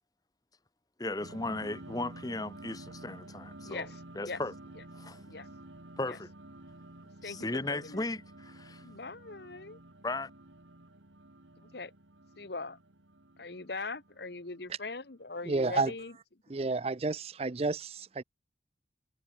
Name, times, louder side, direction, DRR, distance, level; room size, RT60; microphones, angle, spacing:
voice 1, 1.0-3.9 4.1-4.5 5.0-5.2 6.0-6.3 7.2-8.8 10.0-10.3, left 2 dB, 20° left, 1.1 m, -36 dB
sound 1, 1.2-15.2, right 1 dB, 90° right, 2.6 m, -51 dB
voice 2, 3.6-4.4 5.3-5.5 6.1-6.2 7.2-8.0 8.8-9.8 11.6-11.9 12.4-12.8 13.4-16.1, left 3 dB, 60° left, 1.3 m, -41 dB
voice 3, 15.5-15.9 16.5-18.2, right 3 dB, 30° right, 0.5 m, -30 dB
head